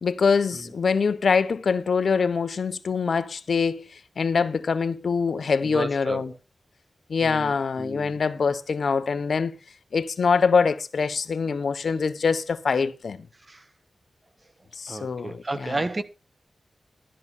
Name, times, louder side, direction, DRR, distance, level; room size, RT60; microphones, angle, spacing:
voice 1, 0.0-6.3 7.1-9.6 9.9-13.3 14.8-15.8, left 5 dB, 75° left, 1.1 m, -24 dB
voice 2, 5.6-6.4 7.2-8.2 13.5-13.6 14.9-16.0, right 2 dB, 30° right, 1.3 m, -32 dB
12.5 x 10.5 x 4.4 m
cardioid pair, 65°, 0 cm